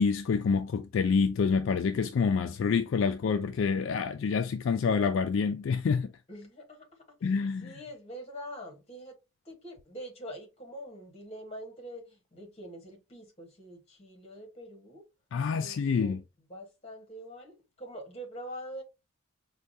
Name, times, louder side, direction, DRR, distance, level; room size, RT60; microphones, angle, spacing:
voice 1, 0.0-6.1 7.2-7.7 15.3-16.2, left 5 dB, 60° left, 0.3 m, -27 dB
voice 2, 6.3-7.3 7.6-9.2 9.4-15.0 15.5-16.2 16.5-18.8, equal, 30° left, 1.1 m, -45 dB
4.6 x 2.2 x 2.6 m
head